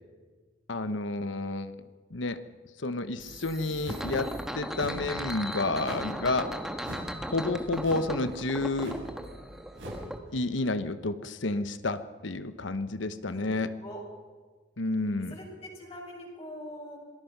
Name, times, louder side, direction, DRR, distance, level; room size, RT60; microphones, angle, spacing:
voice 1, 0.7-1.7 2.1-2.4 2.8-6.5 7.3-9.0 10.3-13.7 14.8-15.3, left 2 dB, 80° left, 12 dB, 1.1 m, -30 dB
sound 1, 3.2-10.2, equal, ahead, 1.4 m, -37 dB
sound 2, 3.8-4.2 4.7-5.1 5.8-6.2 6.8-7.1 7.8-8.2 8.7-9.1 9.7-10.1, right 1 dB, 80° right, 7.5 m, -41 dB
voice 2, 15.3-17.0, equal, 35° left, -2 dB, 6.0 m, -43 dB
26.5 x 19.0 x 6.0 m, 1.4 s
head